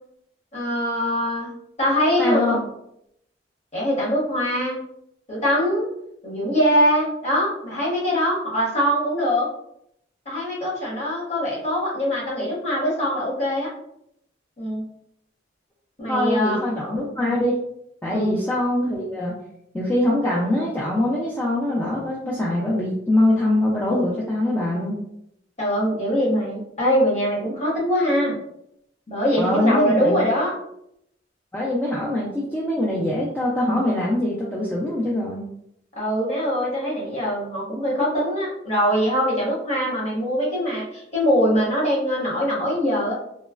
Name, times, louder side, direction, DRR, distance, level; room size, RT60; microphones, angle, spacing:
voice 1, 0.5-1.5 1.8-2.6 3.7-4.8 5.3-5.9 6.2-9.5 10.3-13.7 14.6-14.8 16.0-16.6 18.1-18.4 25.6-28.4 29.1-30.5 36.0-43.1, equal, 35° left, -5 dB, 1.0 m, -22 dB
voice 2, 2.2-2.6 16.1-17.6 18.0-19.3 19.7-25.0 29.4-30.3 31.5-35.4, left 1 dB, 10° left, -6 dB, 0.3 m, -23 dB
3.0 x 2.0 x 2.3 m, 0.75 s
head